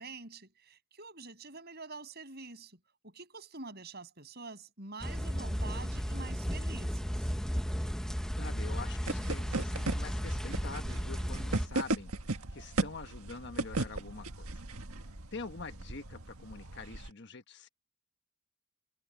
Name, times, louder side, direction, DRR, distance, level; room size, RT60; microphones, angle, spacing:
voice 1, 0.0-7.3 14.9-15.0, right 3 dB, 45° right, 8.0 m, -47 dB
sound 1, 5.0-11.7, equal, 5° left, 1.0 m, -34 dB
voice 2, 8.3-14.5 15.3-17.7, left 4 dB, 50° left, 1.4 m, -45 dB
sound 2, 9.1-17.1, right 2 dB, 75° right, 1.7 m, -37 dB
head